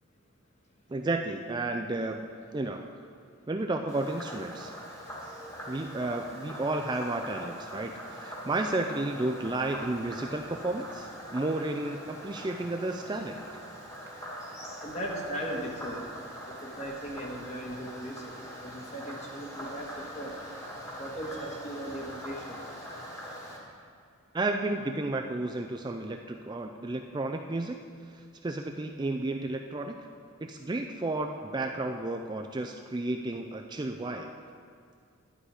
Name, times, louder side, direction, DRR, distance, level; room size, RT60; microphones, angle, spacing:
voice 1, 0.9-2.2 2.5-3.0 3.5-4.7 5.7-13.4 24.3-27.8 28.1-30.0 30.4-34.3, right 2 dB, 20° right, 4 dB, 0.3 m, -32 dB
Frog, 3.9-23.6, equal, 15° left, 1.6 m, -43 dB
voice 2, 14.8-16.0 16.5-18.3 18.6-20.3 21.0-22.6, right 1 dB, 30° left, -1 dB, 1.6 m, -38 dB
11.5 x 9.5 x 4.9 m, 2.2 s
head